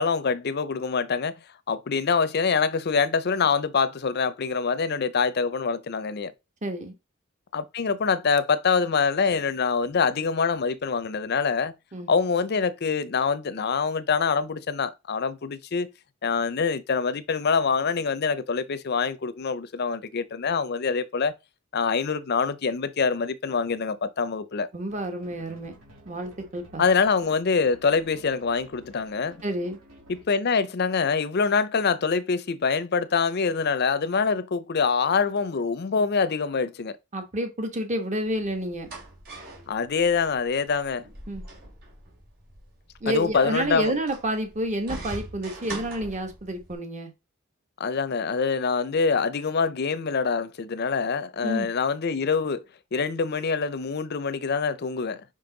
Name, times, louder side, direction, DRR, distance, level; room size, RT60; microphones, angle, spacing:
voice 1, 0.0-1.4 1.7-6.3 7.5-11.7 12.1-15.9 16.2-21.3 21.7-24.7 26.8-29.4 30.1-36.9 39.7-41.0 43.1-43.9 47.8-52.6 52.9-55.2, left 5 dB, 50° left, 0.6 m, -25 dB
voice 2, 6.6-6.9 11.9-12.1 24.7-25.7 26.1-26.8 29.4-29.8 37.1-38.9 41.3-41.4 43.0-47.1 51.4-51.7, right 1 dB, 35° right, 1.2 m, -29 dB
sound 1, 24.9-30.4, right 1 dB, 85° right, 2.7 m, -52 dB
sound 2, 38.3-46.7, right 2 dB, 50° right, 3.1 m, -42 dB
5.2 x 5.2 x 3.9 m
head